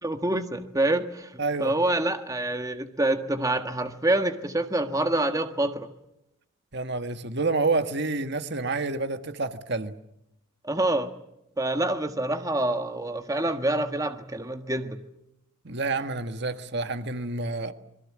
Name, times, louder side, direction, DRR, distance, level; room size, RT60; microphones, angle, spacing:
voice 1, 0.0-1.3 1.6-5.9 10.6-11.1 11.6-15.0, right 1 dB, 15° right, 7 dB, 1.5 m, -26 dB
voice 2, 1.4-1.7 6.7-10.0 15.6-17.7, right 3 dB, 55° right, 9 dB, 1.5 m, -28 dB
27.5 x 22.0 x 7.5 m, 0.85 s
head